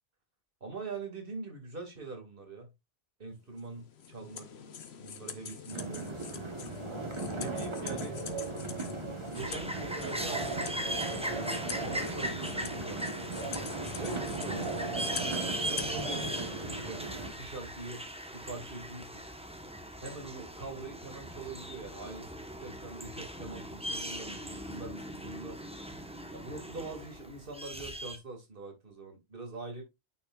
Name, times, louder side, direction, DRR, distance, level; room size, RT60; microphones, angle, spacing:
voice 1, 0.6-2.7 3.2-4.5 5.0-6.4 7.3-8.2 9.3-10.9 11.3-13.0 13.8-18.0 18.3-19.2 20.0-22.3 22.6-25.6 26.3-29.8, right 3 dB, 60° right, 2.3 m, -43 dB
sound 1, 3.6-15.9, left 7 dB, 85° left, 1.2 m, -45 dB
sound 2, 5.7-17.3, right 3 dB, 30° right, 1.1 m, -37 dB
sound 3, 9.3-28.2, right 1 dB, 5° right, 0.9 m, -39 dB
9.5 x 5.9 x 2.4 m
omnidirectional pair, 1.0 m